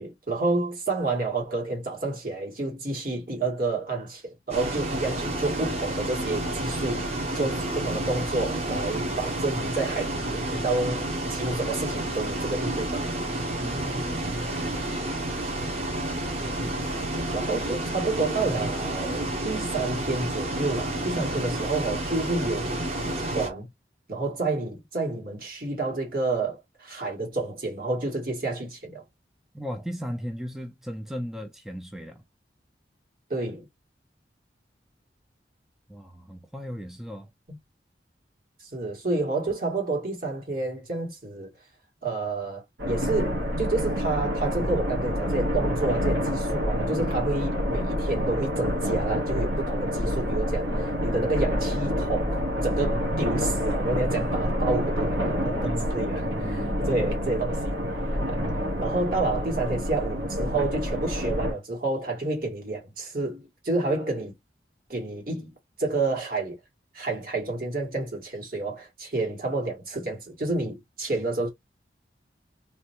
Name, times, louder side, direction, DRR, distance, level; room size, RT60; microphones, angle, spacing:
voice 1, 0.0-7.1 7.3-13.3 16.6-16.7 17.3-22.8 23.2-23.7 24.1-29.0 33.3-33.7 38.7-41.5 42.0-57.8 58.3-58.4 58.8-64.3 64.9-65.5 65.8-66.6 66.9-71.5, right 3 dB, 55° right, 1.9 m, -29 dB
Bus, 4.5-23.5, right 1 dB, 35° right, 1.2 m, -30 dB
voice 2, 13.6-15.1 29.5-32.2 35.9-37.3 55.6-57.2 58.4-58.9, equal, ahead, 0.3 m, -37 dB
sound 1, 42.8-61.5, equal, 90° right, 1.5 m, -27 dB
3.2 x 3.1 x 3.0 m
head